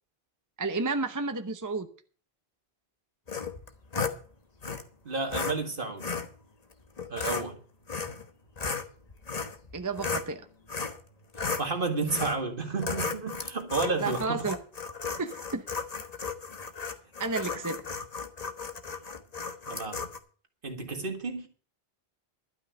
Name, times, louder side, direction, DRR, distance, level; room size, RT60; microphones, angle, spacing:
voice 1, 0.6-1.9 9.7-10.4 14.0-14.6 15.2-15.6 17.2-17.8, right 3 dB, 20° right, 0.8 m, -31 dB
sound 1, 3.3-4.2 4.6-4.8 5.3-5.5 6.0-6.3 7.0-7.4 7.9-8.2 8.6-10.3 10.7-11.0 11.3-11.7 12.1-12.4 12.8-20.2, left 5 dB, 40° left, 1.3 m, -34 dB
voice 2, 5.1-6.1 7.1-7.6 11.6-14.5 19.7-20.1 20.6-21.5, right 4 dB, 55° right, 2.1 m, -31 dB
12.5 x 5.6 x 9.3 m
omnidirectional pair, 1.1 m